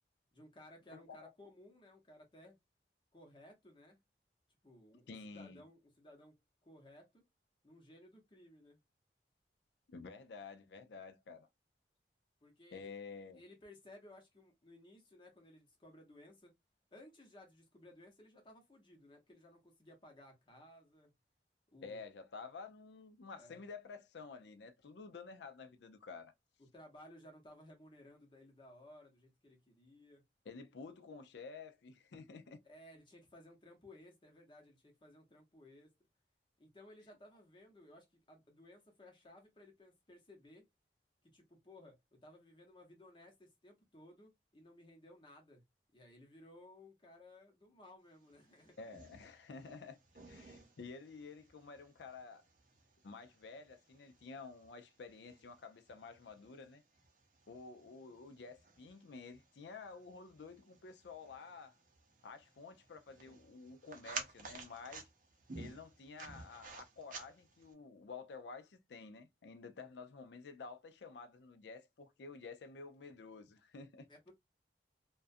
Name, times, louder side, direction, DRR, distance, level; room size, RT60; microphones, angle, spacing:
voice 1, 0.3-2.6 3.1-4.0 4.6-7.2 7.6-8.8 12.4-12.9 13.3-16.5 16.9-21.1 21.7-22.0 23.3-23.7 26.6-30.2 32.6-36.0 36.6-40.7 41.2-45.6 45.9-48.9 74.1-74.3, left 1 dB, 30° left, 0.8 m, -59 dB
voice 2, 0.9-1.3 5.1-5.6 9.9-11.5 12.7-13.4 21.8-26.3 30.5-32.6 48.8-50.0 50.3-52.4 53.0-56.8 57.5-61.8 62.2-65.1 65.6-74.1, left 4 dB, 80° left, 0.4 m, -51 dB
sound 1, 48.3-67.7, right 4 dB, 45° right, 0.6 m, -54 dB
2.4 x 2.2 x 2.5 m
head